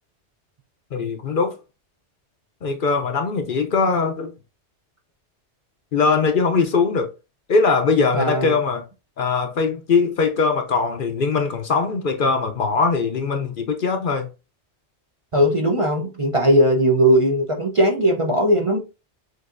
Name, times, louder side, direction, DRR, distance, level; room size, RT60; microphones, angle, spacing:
voice 1, 0.9-1.5 2.6-4.3 5.9-7.1 7.5-8.8 9.2-14.3, left 4 dB, 55° left, 0.7 m, -21 dB
voice 2, 8.1-8.5 15.3-18.8, equal, 35° right, 0.6 m, -18 dB
6.4 x 2.7 x 2.5 m
omnidirectional pair, 1.2 m